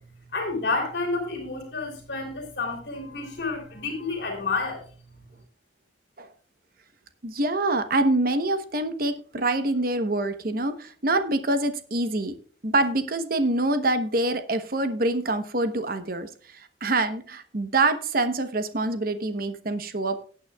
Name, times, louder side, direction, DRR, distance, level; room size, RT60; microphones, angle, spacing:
voice 1, 0.3-4.8, left 3 dB, 60° left, 3 dB, 3.3 m, -30 dB
voice 2, 7.2-12.3 12.6-20.3, right 2 dB, 50° right, 9 dB, 1.0 m, -25 dB
19.0 x 8.9 x 2.3 m, 0.42 s
head